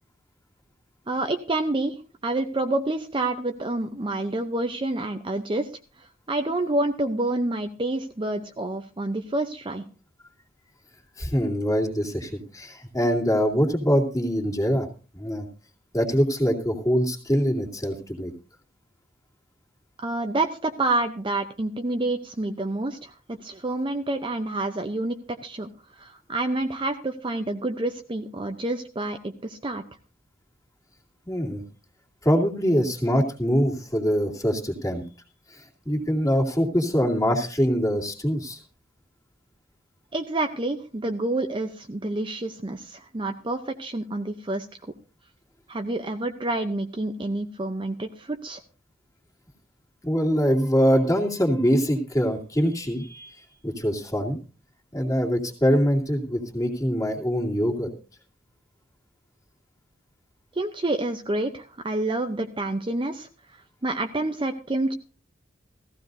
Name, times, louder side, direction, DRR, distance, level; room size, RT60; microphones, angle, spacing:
voice 1, 1.1-5.7 6.0-9.8 20.0-25.7 26.0-29.8 40.1-44.7 45.7-48.6 60.6-63.3 63.8-64.9, right 2 dB, 25° right, 6 dB, 0.7 m, -28 dB
voice 2, 11.2-14.9 15.1-15.5 15.9-18.3 31.3-31.6 32.2-35.0 35.5-38.6 50.0-54.4 54.9-57.9, equal, 20° left, -1 dB, 2.5 m, -24 dB
16.0 x 15.0 x 2.7 m, 0.34 s
head